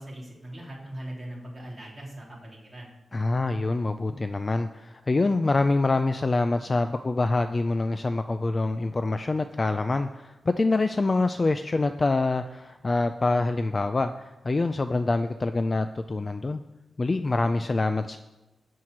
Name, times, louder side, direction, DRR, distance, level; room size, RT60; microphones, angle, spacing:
voice 1, 0.0-2.9, right 1 dB, 10° right, -5 dB, 3.7 m, -40 dB
voice 2, 3.1-16.6 17.0-18.2, left 3 dB, 30° left, 9 dB, 0.4 m, -25 dB
14.0 x 4.7 x 8.7 m, 1.1 s
wide cardioid pair, 135°, 0 cm